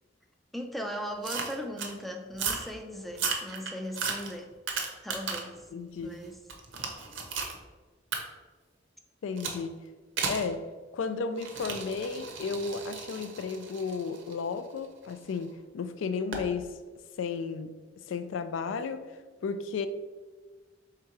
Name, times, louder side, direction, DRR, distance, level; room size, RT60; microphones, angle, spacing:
voice 1, 0.5-4.5 5.0-5.7 6.0-6.4, equal, ahead, 4 dB, 0.3 m, -38 dB
sound 1, 1.2-1.9 2.3-2.7 3.1-5.6 6.0-7.6 8.1-8.2 9.4-9.6 10.2-10.5 11.4-15.3 16.3-16.5, right 5 dB, 75° right, 0.7 m, -35 dB
voice 2, 5.7-6.2 9.2-9.8 10.3-10.6 10.9-16.7 17.2-17.7 18.1-19.1 19.4-19.9, left 5 dB, 85° left, 11 dB, 0.3 m, -33 dB
3.6 x 2.8 x 4.5 m, 1.3 s
head